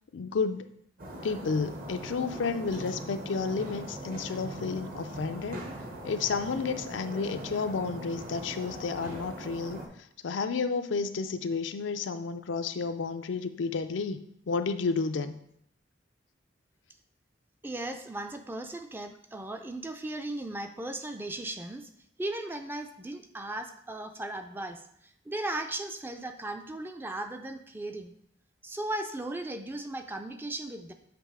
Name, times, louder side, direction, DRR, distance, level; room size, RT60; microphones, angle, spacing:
voice 1, 0.1-0.8 1.2-5.7 6.0-9.8 10.2-15.4, left 4 dB, 85° left, 10 dB, 0.4 m, -31 dB
sound 1, 1.0-9.9, right 1 dB, 50° right, 1.0 m, -41 dB
voice 2, 17.6-21.9 22.2-28.2 28.6-30.9, right 1 dB, 10° right, 6 dB, 0.4 m, -37 dB
7.6 x 3.1 x 4.8 m, 0.71 s
head